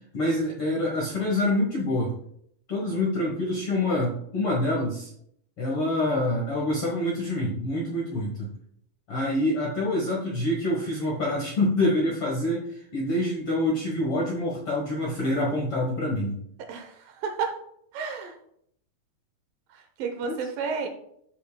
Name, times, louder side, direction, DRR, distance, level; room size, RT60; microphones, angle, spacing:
voice 1, 0.1-2.1 2.7-5.1 5.6-8.5 9.1-16.4 20.2-20.4, left 1 dB, 60° left, -4 dB, 1.5 m, -26 dB
voice 2, 16.7-17.6 17.9-18.4 19.7-20.9, right 5 dB, 75° right, 5 dB, 2.4 m, -31 dB
13.5 x 5.5 x 2.2 m, 0.68 s
omnidirectional pair, 4.3 m